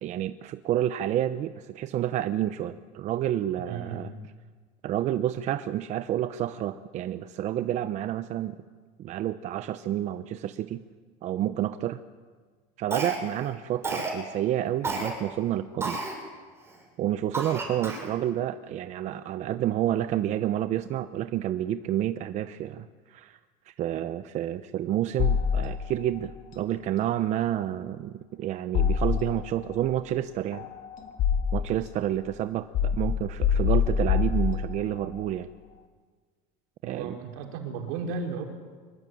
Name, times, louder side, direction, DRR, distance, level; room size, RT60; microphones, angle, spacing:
voice 1, 0.0-4.1 4.8-8.6 9.0-10.8 11.2-12.0 12.8-16.0 17.0-23.4 23.7-30.7 31.5-35.5 36.8-37.2, right 12 dB, 45° right, 11 dB, 0.9 m, -29 dB
voice 2, 3.6-4.1 36.8-38.4, right 5 dB, 75° right, 3 dB, 5.0 m, -34 dB
Cough, 12.9-13.4 13.8-14.2 14.8-15.1 15.8-16.2 16.7-16.8 17.3-18.1, right 2 dB, 15° right, 6.7 m, -31 dB
sound 1, 25.2-26.1 28.7-29.6 30.5-31.8 32.7-35.0, left 7 dB, 55° left, 3.1 m, -25 dB
25.0 x 22.5 x 9.3 m, 1.5 s
cardioid pair, 140°, 17 cm